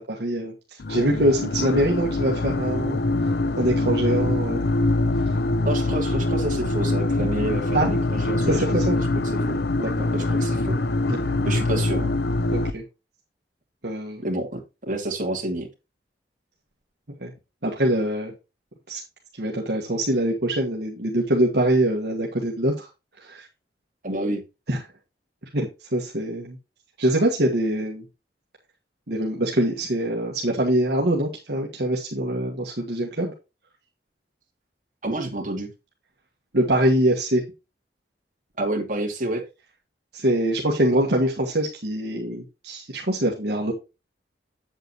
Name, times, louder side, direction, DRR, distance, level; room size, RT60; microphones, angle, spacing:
voice 1, 0.0-3.0 3.6-4.7 7.7-7.9 8.5-9.0 9.8-10.1 11.1-11.2 12.5-12.8 13.8-14.2 17.2-17.3 17.6-18.3 18.9-19.0 19.4-22.9 23.2-23.5 24.7-24.8 25.5-26.6 27.0-28.0 29.1-33.3 36.5-37.4 40.1-43.7, right 1 dB, 70° right, -1 dB, 1.6 m, -24 dB
sound 1, 0.8-12.7, left 2 dB, 65° left, 0.6 m, -24 dB
voice 2, 5.6-9.1 9.3-9.6 10.1-10.8 11.4-12.2 14.2-15.7 24.0-24.4 35.0-35.7 38.6-39.4, right 1 dB, 45° right, 1 dB, 2.6 m, -29 dB
8.1 x 8.0 x 3.0 m, 0.27 s
head